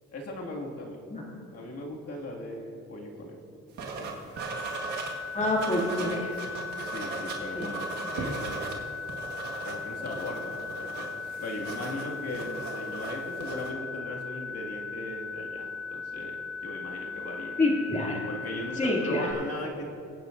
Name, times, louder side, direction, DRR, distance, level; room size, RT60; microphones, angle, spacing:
voice 1, 0.1-1.0 1.5-3.4 3.7-4.2 6.8-8.7 9.6-17.6 18.3-19.8, left 1 dB, 55° left, -1 dB, 2.2 m, -38 dB
sound 1, 3.8-5.1 5.4-8.7 9.0-13.7, right 4 dB, 80° right, 1.7 m, -38 dB
sound 2, 4.4-19.3, left 4 dB, 50° right, 1.8 m, -38 dB
voice 2, 5.3-6.4 7.6-7.7 17.6-18.2 18.8-19.3, left 2 dB, 25° left, -3 dB, 2.6 m, -27 dB
22.0 x 9.1 x 2.6 m, 2.7 s
cardioid pair, 90°, 30 cm